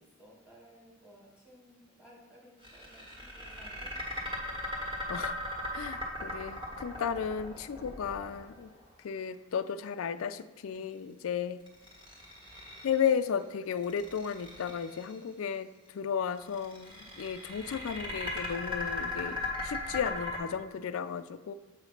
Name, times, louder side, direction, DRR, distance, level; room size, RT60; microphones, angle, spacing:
voice 1, 0.0-3.9, equal, 5° right, -4 dB, 1.6 m, -57 dB
sound 1, 2.6-8.8 11.7-13.2 13.8-15.1 16.4-20.4, left 2 dB, 25° right, 1.5 m, -38 dB
voice 2, 5.7-8.7 9.0-11.6 12.8-15.7 15.9-21.5, left 7 dB, 70° left, 12 dB, 0.4 m, -34 dB
7.7 x 3.0 x 5.7 m, 1.3 s
head